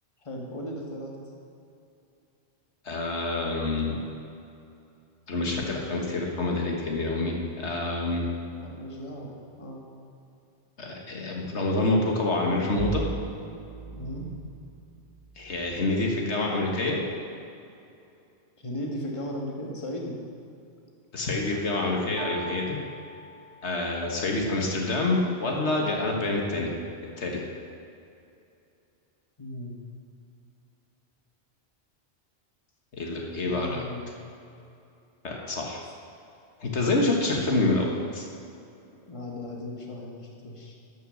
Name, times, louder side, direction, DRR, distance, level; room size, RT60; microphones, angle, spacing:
voice 1, 0.2-1.2 8.5-9.9 13.8-14.2 18.6-20.2 29.4-29.8 33.4-34.1 39.1-40.7, left 1 dB, 30° left, -1 dB, 1.6 m, -36 dB
voice 2, 2.9-3.9 5.3-8.3 10.8-13.0 15.4-17.0 21.1-22.8 23.6-26.7 27.2-27.4 33.0-33.8 35.2-35.8 36.6-38.3, left 2 dB, 80° left, 0 dB, 1.8 m, -27 dB
Bowed string instrument, 12.8-15.8, right 3 dB, 40° right, 0.7 m, -37 dB
sound 1, 22.2-24.3, right 4 dB, 85° right, 1.2 m, -42 dB
12.5 x 6.7 x 6.3 m, 2.6 s
omnidirectional pair, 1.1 m